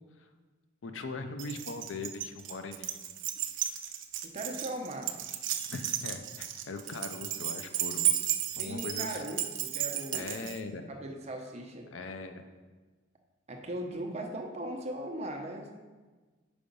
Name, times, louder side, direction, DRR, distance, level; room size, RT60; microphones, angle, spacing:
voice 1, 0.8-3.0 5.7-8.3 8.6-9.2 10.1-10.9 11.9-12.5, left 3 dB, 70° left, 8 dB, 0.5 m, -40 dB
Keys jangling, 1.4-10.6, right 11 dB, 65° right, 0.5 m, -34 dB
voice 2, 4.2-5.2 8.5-10.3 10.9-11.9 13.5-15.7, right 1 dB, 35° right, 2 dB, 0.8 m, -38 dB
5.1 x 4.8 x 5.3 m, 1.3 s
head